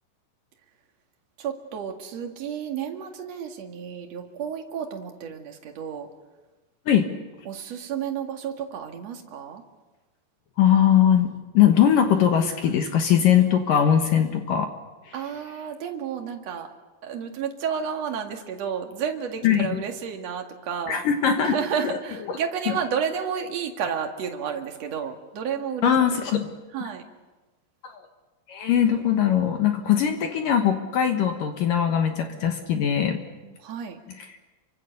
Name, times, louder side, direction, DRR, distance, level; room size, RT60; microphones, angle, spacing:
voice 1, 1.4-6.1 7.5-9.6 15.1-16.7 17.0-21.0 21.4-25.9 26.7-27.0 33.0-34.0, right 7 dB, 45° right, 3 dB, 2.5 m, -31 dB
voice 2, 10.6-14.7 15.1-15.2 19.4-19.8 20.9-21.6 22.3-22.4 22.7-22.8 25.8-26.5 27.8-28.0 28.5-33.2, left 9 dB, 65° left, 5 dB, 2.4 m, -21 dB
28.5 x 24.5 x 6.7 m, 1.2 s
omnidirectional pair, 5.2 m